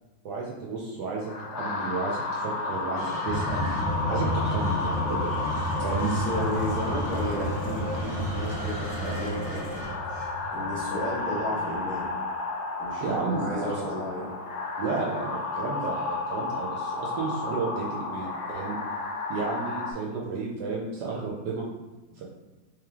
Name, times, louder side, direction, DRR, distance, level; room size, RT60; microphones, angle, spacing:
voice 1, 0.2-3.7 4.1-5.4 5.8-6.1 13.0-14.0 14.8-18.8 19.3-21.6 22.2-22.3, right 4 dB, 70° right, -2 dB, 1.1 m, -32 dB
sound 1, 1.2-19.9, left 3 dB, 70° left, 1.0 m, -33 dB
sound 2, 2.9-11.4, right 1 dB, 45° right, 1.1 m, -39 dB
sound 3, 3.2-11.4, equal, 85° left, 0.6 m, -31 dB
voice 2, 6.0-9.8 10.5-12.1 12.8-14.3, left 1 dB, 10° right, -6 dB, 0.8 m, -33 dB
3.3 x 3.2 x 3.5 m, 1.2 s
omnidirectional pair, 2.1 m